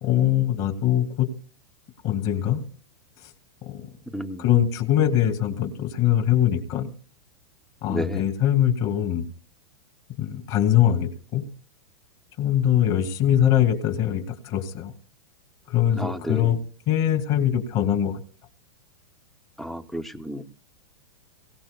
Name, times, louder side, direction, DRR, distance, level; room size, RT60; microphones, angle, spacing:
voice 1, 0.0-1.3 2.0-2.7 3.7-3.9 4.4-6.9 7.8-9.3 10.2-11.4 12.4-14.9 15.7-16.6 16.9-18.2, left 11 dB, 40° left, 6 dB, 2.7 m, -22 dB
voice 2, 4.1-4.4 7.9-8.2 16.0-16.5 19.6-20.4, equal, ahead, 12 dB, 0.7 m, -31 dB
23.0 x 17.5 x 2.3 m, 0.38 s
supercardioid pair, 145°, 17 cm